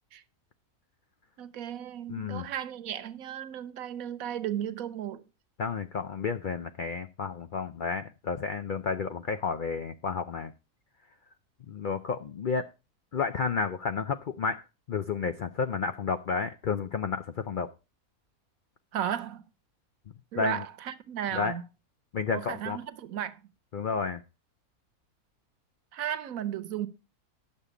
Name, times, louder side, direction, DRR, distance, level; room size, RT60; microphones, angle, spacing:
voice 1, 1.4-5.2 18.9-19.4 20.3-21.6 22.3-23.4 25.9-26.9, right 10 dB, 70° right, 1.1 m, -34 dB
voice 2, 2.1-2.5 5.6-10.5 11.7-12.7 13.1-14.6 14.9-17.7 20.4-20.6 21.3-21.5 22.1-22.8 23.7-24.2, left 5 dB, 80° left, 0.4 m, -31 dB
9.8 x 6.8 x 4.9 m
omnidirectional pair, 1.6 m